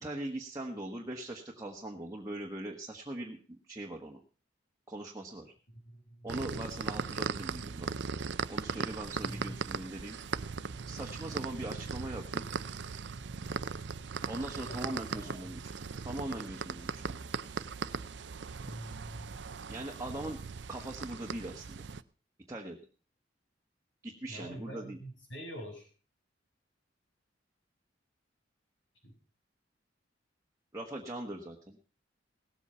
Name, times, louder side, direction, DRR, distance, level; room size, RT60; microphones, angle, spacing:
voice 1, 0.0-4.2 4.9-5.5 6.2-7.9 8.5-10.2 10.9-12.4 14.2-15.6 16.0-17.2 19.7-20.4 20.7-21.8 22.5-22.8 24.0-25.0 30.7-31.8, right 1 dB, 15° right, -1 dB, 1.3 m, -41 dB
voice 2, 5.9-6.3 9.2-9.6 14.6-15.5 18.6-19.4 24.3-25.9 29.0-29.1, right 1 dB, 85° left, 1 dB, 6.7 m, -45 dB
sound 1, 6.3-22.0, right 5 dB, 70° right, 0.6 m, -38 dB
18.0 x 8.3 x 5.6 m, 0.39 s
head